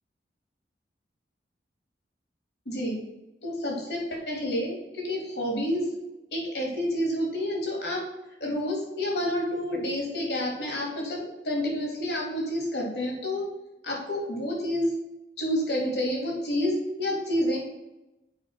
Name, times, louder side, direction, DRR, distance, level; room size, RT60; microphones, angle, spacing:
voice 1, 2.6-3.0 3.4-5.9 6.3-8.0 8.4-13.4 13.8-14.9 15.4-17.6, left 1 dB, 70° left, -2 dB, 3.2 m, -29 dB
7.7 x 5.5 x 5.8 m, 0.96 s
head